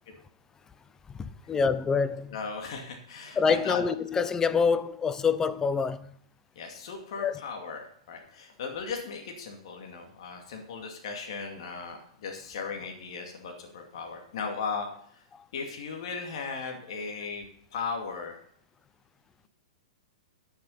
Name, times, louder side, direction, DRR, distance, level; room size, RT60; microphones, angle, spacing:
voice 1, 1.5-2.4 3.4-6.1 7.2-7.4, left 5 dB, 15° left, 0.6 m, -26 dB
voice 2, 2.3-3.8 6.6-14.9 15.1-15.2 15.5-17.5 17.7-18.4, left 5 dB, 65° left, 2.4 m, -37 dB
9.7 x 7.3 x 5.5 m
hypercardioid pair, 120°, 3 cm